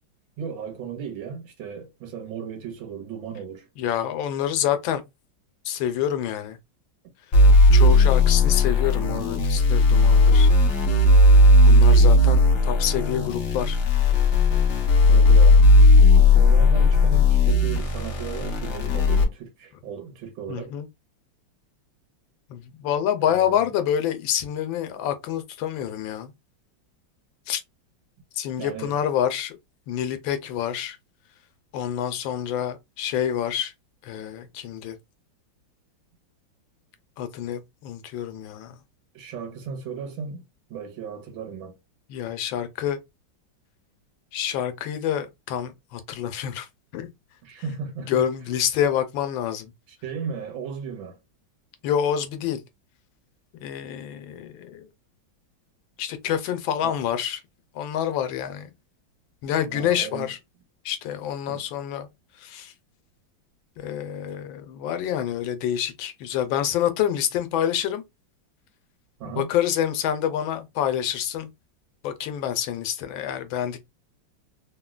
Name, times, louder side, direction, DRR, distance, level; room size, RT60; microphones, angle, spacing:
voice 1, 0.4-3.7 15.1-15.7 16.2-20.8 23.2-23.7 28.6-29.0 39.1-40.4 40.7-41.8 47.4-48.3 49.9-51.2 56.8-57.0 59.7-60.3 61.5-61.6 69.2-69.5, right 6 dB, 85° right, 1.7 m, -35 dB
voice 2, 3.8-5.0 5.7-6.6 7.7-10.5 11.6-13.8 20.5-20.9 22.5-26.3 27.5-27.6 28.4-29.6 29.9-31.0 31.7-33.7 34.0-35.0 37.2-38.8 42.1-43.0 44.3-46.7 46.9-47.1 48.1-49.7 51.8-52.6 53.6-54.9 56.0-57.4 57.7-58.7 59.4-60.4 60.8-62.1 62.4-62.7 63.8-68.0 69.2-71.5 72.0-73.9, left 10 dB, 85° left, 1.3 m, -27 dB
sound 1, 7.3-19.2, left 2 dB, 60° left, 0.7 m, -16 dB
3.6 x 2.1 x 2.3 m
omnidirectional pair, 2.1 m